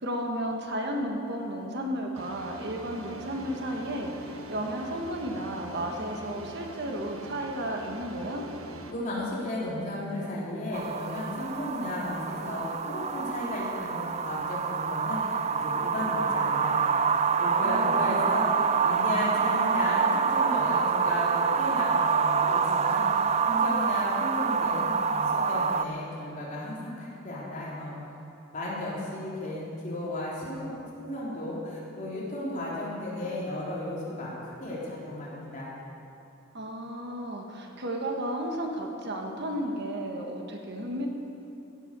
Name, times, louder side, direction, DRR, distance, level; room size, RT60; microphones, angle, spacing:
voice 1, 0.0-8.5 17.6-18.3 36.5-41.1, right 1 dB, 55° right, 1 dB, 1.4 m, -33 dB
sound 1, 2.1-8.9, right 2 dB, 90° right, 1.3 m, -43 dB
voice 2, 8.9-16.9 17.4-28.0 28.5-30.7 31.0-35.7, left 1 dB, 40° left, -7 dB, 3.7 m, -34 dB
sound 2, 10.7-25.8, right 6 dB, 30° right, 0.4 m, -26 dB
16.5 x 8.5 x 6.8 m, 2.8 s
head